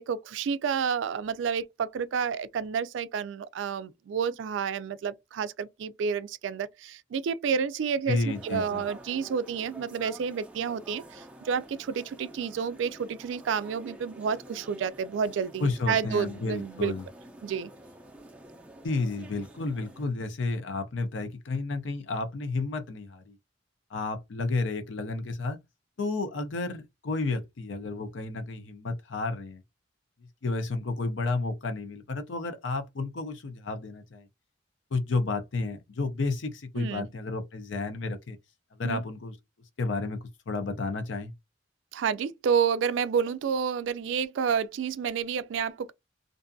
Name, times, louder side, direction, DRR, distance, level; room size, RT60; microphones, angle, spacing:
voice 1, 0.0-16.9 17.4-17.7 36.8-37.1 38.8-39.0 41.9-45.9, right 6 dB, 80° right, 0.3 m, -30 dB
voice 2, 8.1-8.8 15.6-17.0 18.8-23.3 23.9-25.6 26.0-29.6 30.4-34.3 34.9-38.4 38.8-39.4 39.8-40.2 40.5-41.3, left 3 dB, 75° left, 0.5 m, -31 dB
sound 1, 8.3-20.0, right 1 dB, 5° right, 0.4 m, -49 dB
2.5 x 2.3 x 2.5 m
head